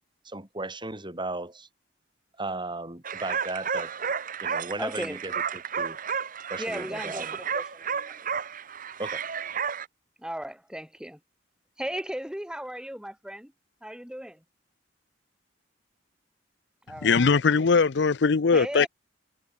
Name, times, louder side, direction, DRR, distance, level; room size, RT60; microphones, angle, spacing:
voice 1, 0.3-1.7 2.4-3.9 4.4-6.0 6.5-7.4 9.0-9.2, right 2 dB, 25° right, 5.2 m, -36 dB
sound 1, 3.0-9.9, right 7 dB, 50° right, 1.2 m, -32 dB
voice 2, 4.8-5.2 6.6-8.2 10.2-11.2 11.8-13.5 13.8-14.4 16.9-17.4 18.5-18.9, equal, 5° right, 6.0 m, -36 dB
voice 3, 17.0-18.9, left 5 dB, 70° left, 0.6 m, -21 dB
head